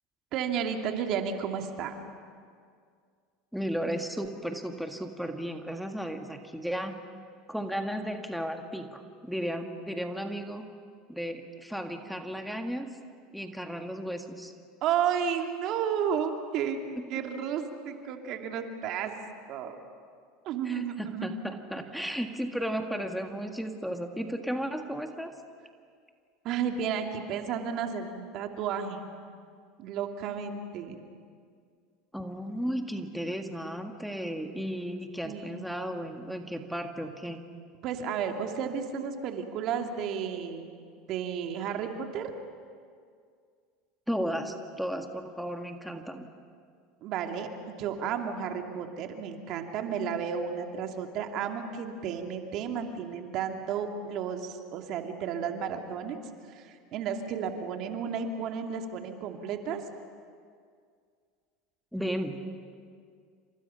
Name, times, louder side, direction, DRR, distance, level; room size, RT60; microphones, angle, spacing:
voice 1, 0.3-2.0 14.8-16.8 17.1-19.1 19.5-19.8 20.4-21.3 26.4-29.1 29.8-31.0 35.2-35.7 37.8-40.7 41.1-42.3 47.0-56.2 56.5-59.8, right 7 dB, 55° right, 4 dB, 2.5 m, -32 dB
voice 2, 3.5-7.0 7.5-10.7 11.1-12.9 13.3-14.5 17.0-17.1 20.6-25.3 32.1-37.4 44.1-46.3 61.9-62.4, equal, ahead, 4 dB, 1.8 m, -34 dB
29.0 x 26.5 x 5.7 m, 2.1 s
hypercardioid pair, 95°, 0 cm